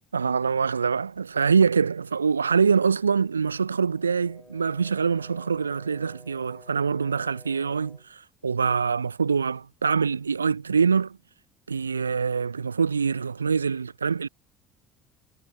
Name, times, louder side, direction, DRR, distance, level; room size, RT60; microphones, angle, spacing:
voice 1, 0.1-11.2 11.7-14.3, right 5 dB, 85° right, 0.3 m, -24 dB
Brass instrument, 3.9-8.1, left 1 dB, 10° left, 7.7 m, -52 dB
figure-of-eight pair, 60°, 0 cm